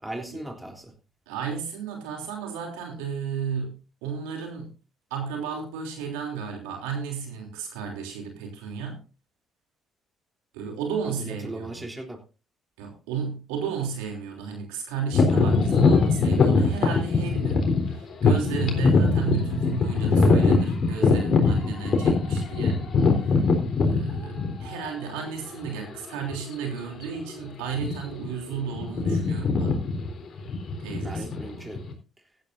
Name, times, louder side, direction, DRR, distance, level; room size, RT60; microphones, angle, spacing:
voice 1, 0.0-0.9 11.0-12.2 31.0-31.8, right 1 dB, 10° right, 3 dB, 3.5 m, -37 dB
voice 2, 1.3-4.7 5.1-9.0 10.5-11.9 12.8-22.8 23.2-23.5 23.8-29.8 30.8-31.7, right 6 dB, 90° right, 2 dB, 3.2 m, -33 dB
sound 1, 15.1-24.9 25.5-25.7 26.3-26.5 26.8-27.0 27.7-28.3 28.5-31.9, left 4 dB, 55° left, 3.8 m, -22 dB
15.5 x 11.5 x 2.7 m, 0.32 s
supercardioid pair, 60°, 0 cm